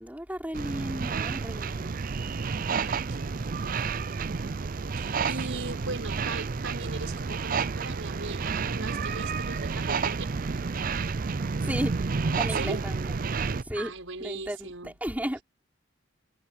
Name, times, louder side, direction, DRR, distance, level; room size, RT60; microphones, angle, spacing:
voice 1, 0.0-1.9 2.6-2.7 3.7-3.9 5.5-5.8 11.6-12.0 12.4-13.2 13.6-13.9 14.2-15.4, equal, 10° right, 4.8 m, -35 dB
sound 1, 0.5-13.6, right 5 dB, 45° right, 0.5 m, -30 dB
voice 2, 2.8-3.8 5.0-10.3 12.5-12.8 13.7-14.9, right 3 dB, 90° right, 5.7 m, -39 dB
head